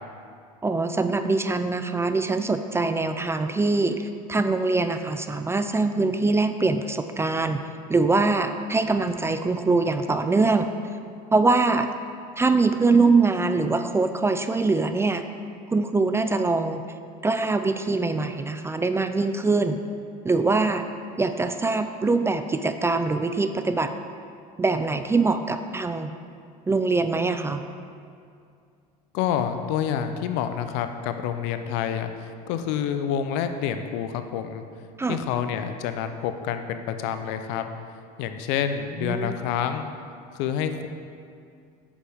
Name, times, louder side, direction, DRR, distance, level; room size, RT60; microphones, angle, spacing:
voice 1, 0.6-10.7 11.3-11.9 12.4-15.2 15.7-16.8 17.2-19.8 20.2-20.9 21.2-23.9 24.6-26.1 26.7-27.6 35.0-35.2 39.0-39.4, right 3 dB, 15° right, 9 dB, 0.4 m, -23 dB
voice 2, 29.1-32.1 32.5-34.6 35.1-37.7 38.2-39.9 40.3-40.9, left 9 dB, 70° left, 8 dB, 0.7 m, -28 dB
8.8 x 7.1 x 3.5 m, 2.3 s
supercardioid pair, 90°, 19 cm